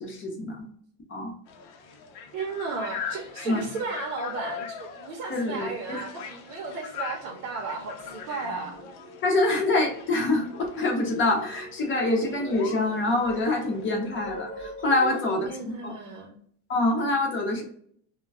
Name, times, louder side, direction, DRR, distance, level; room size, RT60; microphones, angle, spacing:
voice 1, 0.0-0.7 1.1-1.3 3.4-3.7 5.3-6.0 9.2-15.9 16.7-17.6, left 2 dB, 25° left, 1 dB, 0.7 m, -26 dB
sound 1, 1.5-14.0, left 7 dB, 60° left, 0.6 m, -42 dB
voice 2, 2.3-8.8 15.0-16.3, right 4 dB, 75° right, 0 dB, 0.8 m, -34 dB
sound 2, 6.5-6.6 7.1-15.1, right 1 dB, 35° right, 0.8 m, -44 dB
2.2 x 2.2 x 3.4 m, 0.62 s
supercardioid pair, 130°, 45 cm